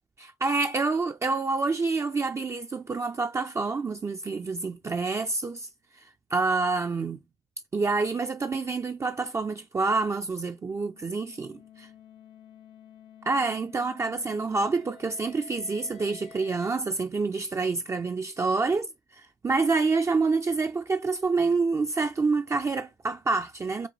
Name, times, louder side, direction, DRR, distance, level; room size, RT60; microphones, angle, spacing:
voice 1, 0.2-5.7 6.3-7.2 7.7-11.9 13.2-18.9 19.2-23.9, right 4 dB, 25° right, 0.4 m, -27 dB
sound 1, 10.4-16.7, left 9 dB, 50° left, 0.7 m, -52 dB
5.1 x 2.3 x 3.1 m
figure-of-eight pair, 40°, 12 cm